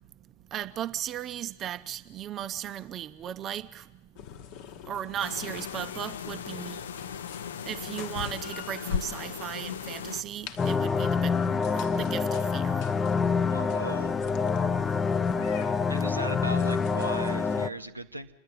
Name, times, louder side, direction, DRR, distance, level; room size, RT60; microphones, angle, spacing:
voice 1, 0.5-3.8 4.9-6.8 7.7-12.9, right 10 dB, 30° right, 0.7 m, -36 dB
sound 1, 4.1-17.7, left 9 dB, 45° left, 1.1 m, -47 dB
sound 2, 5.2-10.2, left 7 dB, 65° left, 0.6 m, -37 dB
sound 3, 10.6-17.7, left 5 dB, 20° left, 0.6 m, -26 dB
voice 2, 13.5-14.1 15.9-18.3, right 2 dB, 85° right, 0.9 m, -37 dB
27.5 x 10.5 x 9.2 m
figure-of-eight pair, 90°, 0 cm